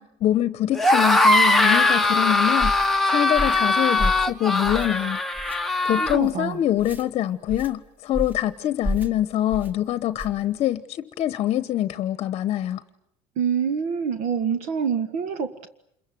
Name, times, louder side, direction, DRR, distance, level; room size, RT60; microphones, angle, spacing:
voice 1, 0.0-2.7 3.1-5.2 5.8-12.8, left 12 dB, 45° left, 13 dB, 1.0 m, -24 dB
sound 1, 0.7-6.2, left 2 dB, ahead, 1.0 m, -20 dB
sound 2, 2.6-2.9 3.3-3.7 4.0-4.3 4.6-5.0 5.3-5.6 6.1-6.3 6.8-7.0 7.5-7.7 8.1-8.4 8.8-9.1 9.5-9.7 10.2-10.4, left 1 dB, 15° right, 1.7 m, -30 dB
voice 2, 6.0-6.6 13.4-15.7, right 7 dB, 65° right, 10 dB, 1.7 m, -26 dB
28.0 x 23.0 x 9.3 m, 0.74 s
cardioid pair, 155°, 13 cm